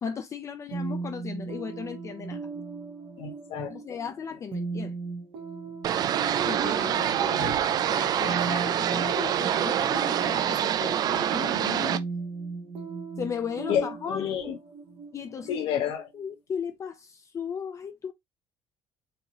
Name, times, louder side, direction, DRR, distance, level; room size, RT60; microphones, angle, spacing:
voice 1, 0.0-2.4 3.7-4.9 6.5-12.1 13.2-14.4 15.1-15.7 16.1-18.1, left 7 dB, 30° left, 0.5 m, -36 dB
sound 1, 0.7-16.3, right 4 dB, 60° right, 1.4 m, -38 dB
voice 2, 3.2-3.7 7.3-7.5 13.7-14.5 15.5-16.1, left 9 dB, 60° left, 1.1 m, -30 dB
sound 2, 5.8-12.0, right 10 dB, 40° right, 0.4 m, -26 dB
4.8 x 2.9 x 2.9 m
cardioid pair, 155°, 10 cm